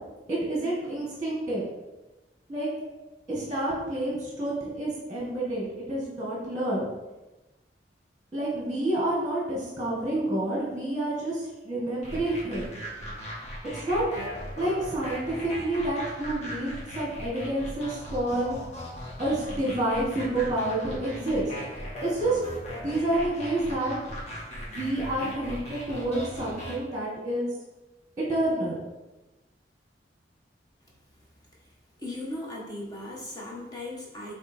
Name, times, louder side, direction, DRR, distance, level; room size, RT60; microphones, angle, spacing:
voice 1, 0.3-1.6 2.5-2.7 3.3-6.9 8.3-12.7 13.7-14.0 14.6-18.6 19.2-21.5 22.0-22.4 22.7-24.0 24.7-27.5 28.2-28.8, right 1 dB, 20° right, -5 dB, 1.8 m, -29 dB
sound 1, 12.0-26.8, equal, 35° left, 1.6 m, -38 dB
voice 2, 32.0-34.3, left 1 dB, 20° left, -4 dB, 1.5 m, -37 dB
8.2 x 3.4 x 4.5 m, 1.1 s
head